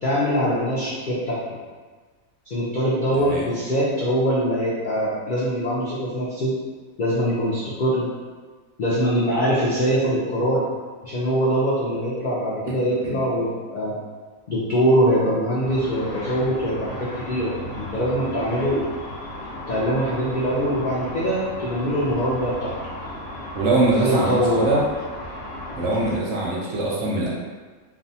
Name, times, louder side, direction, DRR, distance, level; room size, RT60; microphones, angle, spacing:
voice 1, 0.0-1.4 2.5-6.5 7.0-8.1 8.8-10.7 11.0-13.9 14.5-18.8 19.7-22.7 24.0-24.7, equal, 70° left, -8 dB, 0.4 m, -23 dB
voice 2, 3.1-3.4 13.0-13.2 23.6-24.8 25.8-27.3, right 2 dB, 70° right, -4 dB, 0.8 m, -22 dB
Car / Traffic noise roadway noise / Engine, 15.6-26.1, left 1 dB, 55° left, 0.8 m, -35 dB
2.5 x 2.2 x 2.7 m, 1.4 s
omnidirectional pair, 1.5 m